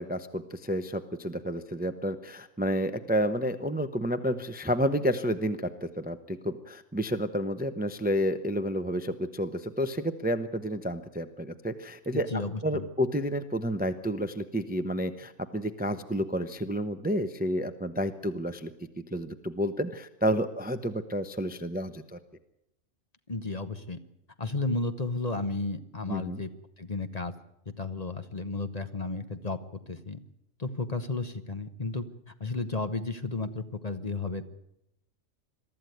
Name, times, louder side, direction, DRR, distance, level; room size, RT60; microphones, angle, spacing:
voice 1, 0.0-12.3 12.6-18.7 19.1-22.2 26.1-26.4, equal, 10° right, 10 dB, 0.8 m, -30 dB
voice 2, 12.3-12.8 23.3-24.0 24.4-26.5 26.8-27.3 27.8-29.6 29.9-30.2 30.6-34.4, left 3 dB, 30° left, 9 dB, 1.1 m, -33 dB
22.5 x 13.5 x 9.3 m, 0.83 s
omnidirectional pair, 1.4 m